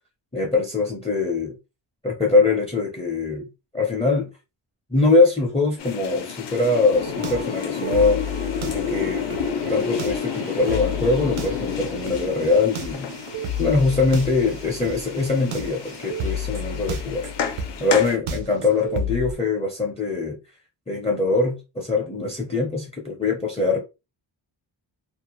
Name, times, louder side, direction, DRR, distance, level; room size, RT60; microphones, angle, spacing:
voice 1, 0.3-1.6 2.0-3.5 3.7-4.3 4.9-8.2 8.7-9.3 9.7-13.1 13.6-17.3 17.8-20.4 20.9-23.8, left 3 dB, 15° left, 0.5 m, -22 dB
sound 1, 5.8-18.2, left 7 dB, 60° left, 0.5 m, -31 dB
sound 2, 6.9-19.3, left 2 dB, 75° right, 0.7 m, -32 dB
2.5 x 2.0 x 2.9 m
wide cardioid pair, 150°, 48 cm